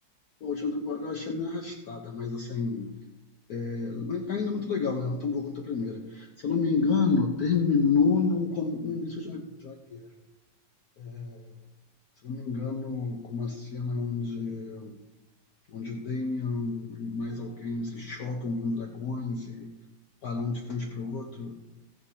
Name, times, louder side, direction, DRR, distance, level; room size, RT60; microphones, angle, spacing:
voice 1, 0.4-2.9 3.5-10.0 11.0-11.4 12.2-14.9 15.7-19.7 20.2-21.6, left 4 dB, 60° left, 1 dB, 1.3 m, -30 dB
16.5 x 7.9 x 2.8 m, 1.0 s
omnidirectional pair, 2.1 m